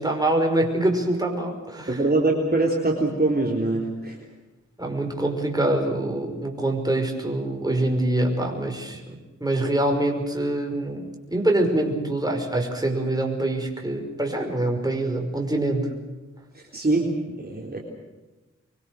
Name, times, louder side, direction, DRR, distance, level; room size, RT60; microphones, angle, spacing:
voice 1, 0.0-2.0 4.8-15.9, right 1 dB, 15° right, 2 dB, 5.5 m, -25 dB
voice 2, 1.9-4.2 16.7-17.8, right 2 dB, 30° right, -1 dB, 3.9 m, -23 dB
25.0 x 23.5 x 6.4 m, 1.2 s
wide cardioid pair, 70°, 30 cm